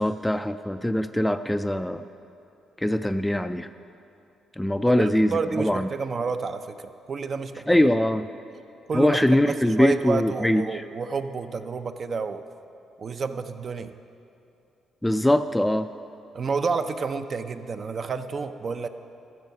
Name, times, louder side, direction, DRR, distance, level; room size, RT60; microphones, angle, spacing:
voice 1, 0.0-2.0 2.8-3.7 4.6-5.3 5.6-5.9 7.7-8.3 8.9-10.8 15.0-15.9, left 1 dB, 5° left, 10 dB, 0.3 m, -22 dB
voice 2, 5.0-7.8 8.9-12.4 13.0-13.9 16.3-18.9, right 5 dB, 45° right, 9 dB, 0.5 m, -30 dB
13.5 x 7.3 x 5.4 m, 2.6 s
cardioid pair, 90°, 0 cm